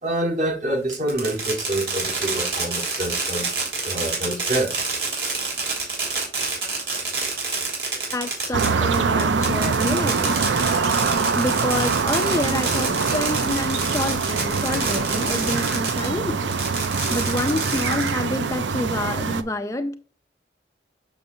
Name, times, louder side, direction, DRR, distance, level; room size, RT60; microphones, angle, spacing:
voice 1, 0.0-3.5 3.8-4.7, right 1 dB, 45° right, 1.5 m, -26 dB
Fireworks, 0.9-16.1 16.5-18.4, right 4 dB, 65° right, 2.9 m, -28 dB
voice 2, 8.1-10.6 11.4-19.9, left 1 dB, 15° left, 0.4 m, -28 dB
sound 1, 8.5-19.4, right 4 dB, 90° right, 0.6 m, -24 dB
6.9 x 6.3 x 2.7 m
head